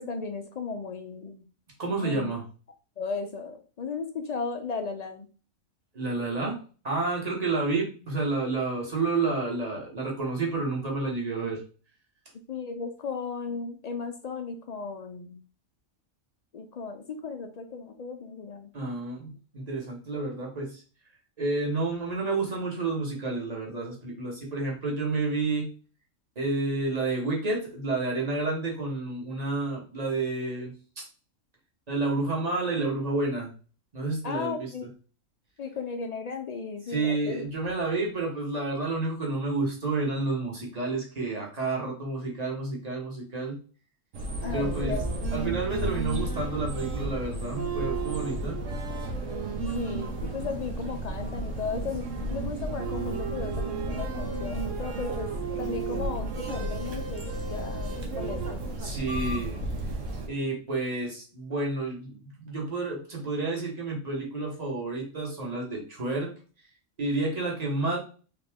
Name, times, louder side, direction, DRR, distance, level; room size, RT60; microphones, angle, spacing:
voice 1, 0.0-1.4 2.0-2.3 3.0-5.3 12.5-15.4 16.5-18.7 34.2-34.9 35.6-37.4 44.4-45.1 45.4-45.5 49.6-55.3 55.6-58.6, left 4 dB, 70° left, 6 dB, 0.3 m, -35 dB
voice 2, 1.8-2.4 5.9-11.6 18.7-20.8 21.4-25.7 26.3-31.0 31.9-33.5 33.9-34.7 36.9-43.6 44.5-45.0 45.3-48.6 58.8-59.6 60.3-66.3 67.0-68.0, right 3 dB, 30° right, -2 dB, 1.4 m, -30 dB
sound 1, 44.1-60.3, right 2 dB, 70° right, 1.3 m, -32 dB
4.0 x 3.2 x 3.5 m, 0.37 s
omnidirectional pair, 1.4 m